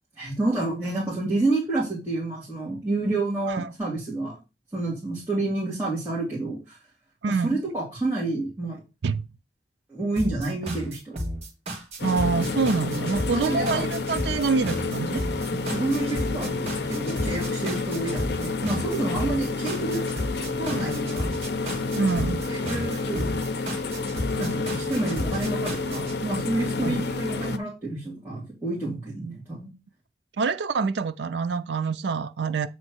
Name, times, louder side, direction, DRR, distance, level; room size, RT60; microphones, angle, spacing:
voice 1, 0.2-4.4 4.7-6.8 7.3-8.8 9.9-11.2 13.3-13.9 15.5-20.0 20.6-21.3 22.5-23.3 24.4-29.7, right 2 dB, 10° right, 2.1 m, -29 dB
voice 2, 7.2-7.6 9.0-9.2 12.0-15.3 21.9-22.4 26.8-27.0 30.4-32.7, right 4 dB, 80° right, 0.4 m, -26 dB
sound 1, 10.2-26.2, equal, 35° right, 1.8 m, -33 dB
sound 2, 12.0-27.6, left 3 dB, 65° left, 0.6 m, -29 dB
7.7 x 3.2 x 6.2 m
head